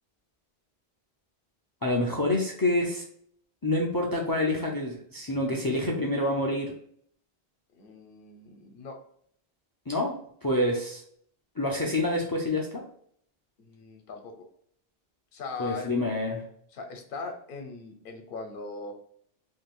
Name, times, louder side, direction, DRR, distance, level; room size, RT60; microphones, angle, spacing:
voice 1, 1.8-3.0 3.6-6.7 9.9-10.2 10.4-11.0 11.6-12.8 15.6-16.4, left 1 dB, 35° left, 0 dB, 0.3 m, -27 dB
voice 2, 7.7-9.0 10.5-10.6 13.6-14.4 15.3-16.0 16.7-18.9, left 4 dB, 65° left, 4 dB, 0.8 m, -40 dB
2.6 x 2.3 x 3.5 m, 0.64 s
omnidirectional pair, 1.0 m